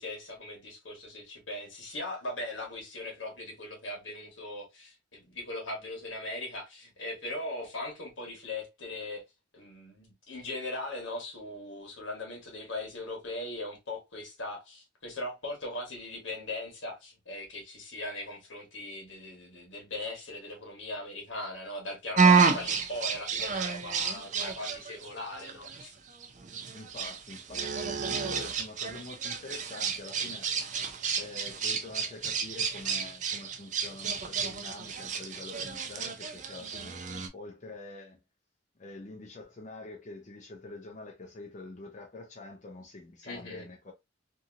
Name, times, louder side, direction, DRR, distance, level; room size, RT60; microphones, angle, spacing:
voice 1, 0.0-9.2 9.5-25.9 43.2-43.6, left 2 dB, 75° left, 1.3 m, -39 dB
sound 1, 22.2-37.3, right 5 dB, 40° right, 0.4 m, -30 dB
voice 2, 26.7-30.5 31.2-37.0 37.3-38.2 38.8-43.9, left 2 dB, 40° left, 0.5 m, -46 dB
2.8 x 2.6 x 2.5 m
head